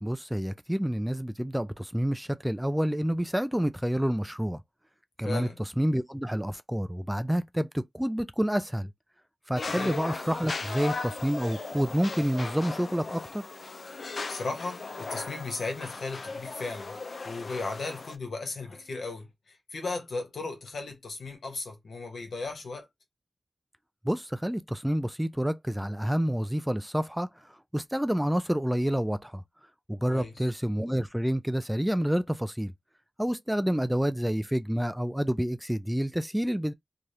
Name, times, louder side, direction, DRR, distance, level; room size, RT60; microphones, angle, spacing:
voice 1, 0.0-4.6 5.2-5.5 5.8-8.9 9.5-13.4 24.0-27.3 27.7-29.4 29.9-32.7 33.2-36.7, equal, 5° right, 0.4 m, -28 dB
voice 2, 5.2-5.6 9.7-9.9 13.9-16.9 17.2-19.3 19.7-22.9 30.1-30.5, left 3 dB, 85° left, 1.1 m, -36 dB
sound 1, 9.5-18.1, left 3 dB, 65° left, 0.4 m, -37 dB
2.7 x 2.4 x 3.2 m
wide cardioid pair, 75°, 0 cm